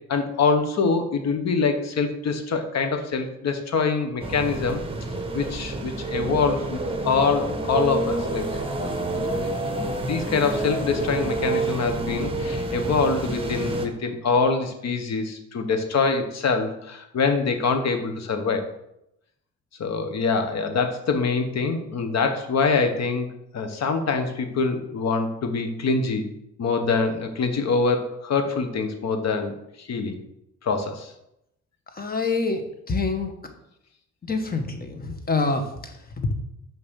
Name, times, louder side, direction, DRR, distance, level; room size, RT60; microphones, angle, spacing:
voice 1, 0.1-4.8 5.3-18.7 19.8-23.3 23.5-26.2 26.6-30.2 30.6-31.1, left 4 dB, 60° left, 6 dB, 1.4 m, -25 dB
sound 1, 4.2-13.9, right 2 dB, 20° right, 1.4 m, -28 dB
voice 2, 31.9-32.6 32.9-33.3 34.2-36.3, left 3 dB, 30° left, 6 dB, 1.5 m, -26 dB
6.5 x 5.3 x 6.3 m, 0.81 s
cardioid pair, 90°, 30 cm